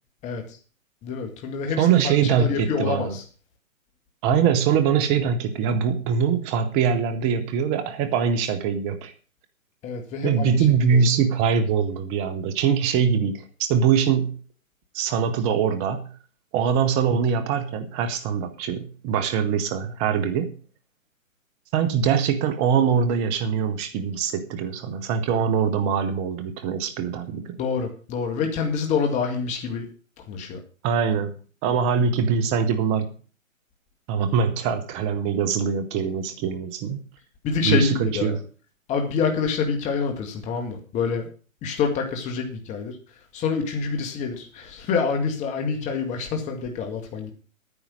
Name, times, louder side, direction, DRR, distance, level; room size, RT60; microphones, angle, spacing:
voice 1, 0.2-0.6 1.0-3.3 9.8-11.0 27.6-29.9 30.2-30.6 37.4-38.4 38.9-41.3 41.6-43.0 43.3-47.3, left 5 dB, 15° left, 4 dB, 1.9 m, -27 dB
voice 2, 1.8-3.2 4.2-9.1 10.2-14.4 14.9-16.1 16.5-20.5 21.7-27.6 30.8-31.4 31.6-33.2 34.1-37.0 37.6-38.4, right 7 dB, 15° right, 10 dB, 0.8 m, -23 dB
10.0 x 9.7 x 6.2 m, 0.38 s
figure-of-eight pair, 135°, 41 cm